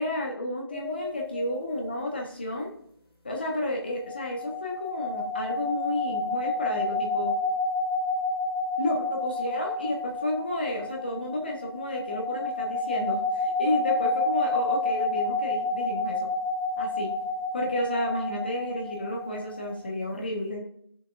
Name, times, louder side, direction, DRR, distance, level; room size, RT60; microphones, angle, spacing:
voice 1, 0.0-2.7 3.2-7.4 8.8-16.2 16.8-17.1 17.5-20.6, left 1 dB, 25° left, 0 dB, 1.3 m, -31 dB
sound 1, 0.7-1.8 3.8-19.9, left 2 dB, 5° left, 0.7 m, -30 dB
13.5 x 6.6 x 2.6 m, 0.70 s
figure-of-eight pair, 165°, 13 cm